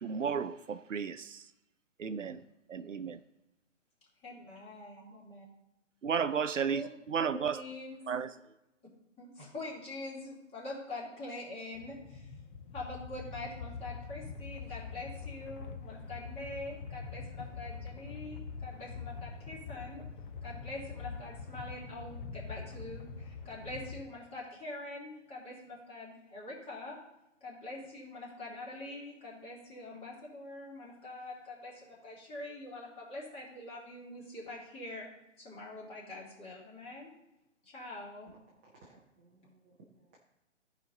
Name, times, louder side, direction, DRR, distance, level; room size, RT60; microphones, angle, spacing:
voice 1, 0.0-1.4 2.0-2.4 2.7-3.2 6.0-6.8 7.1-7.6 8.1-8.3, right 6 dB, 75° right, 12 dB, 0.6 m, -33 dB
voice 2, 4.2-5.4 6.7-8.2 9.2-12.4 12.7-20.0 20.4-27.0 27.4-35.1 35.4-37.1 37.6-38.3, left 2 dB, 15° left, -4 dB, 2.8 m, -44 dB
sound 1, 11.7-24.0, left 5 dB, 45° left, 0.9 m, -44 dB
voice 3, 38.7-40.2, right 3 dB, 10° right, -4 dB, 0.4 m, -61 dB
14.5 x 5.1 x 3.9 m, 0.89 s
figure-of-eight pair, 125°, 38 cm